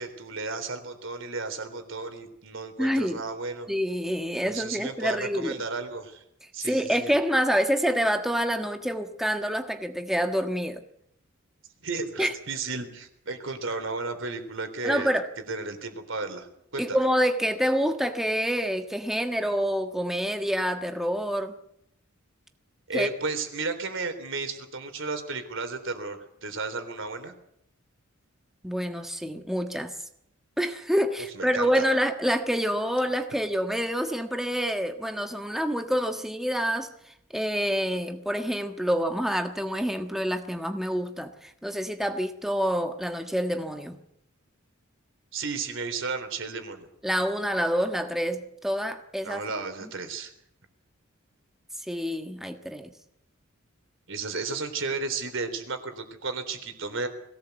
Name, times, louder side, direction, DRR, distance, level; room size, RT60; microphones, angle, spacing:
voice 1, 0.0-3.7 4.4-6.2 6.5-7.1 11.8-15.1 15.5-16.5 16.7-17.0 22.9-27.3 31.4-31.9 45.3-46.9 49.2-50.3 54.1-57.1, right 4 dB, 65° right, 8 dB, 3.6 m, -33 dB
voice 2, 2.8-3.2 3.7-5.6 6.6-10.8 12.2-12.3 14.8-15.3 16.8-21.5 22.9-23.1 28.6-29.9 30.6-44.0 47.0-49.4 49.8-49.9 51.8-52.9, equal, ahead, 6 dB, 1.4 m, -27 dB
22.0 x 17.5 x 8.1 m, 0.75 s
head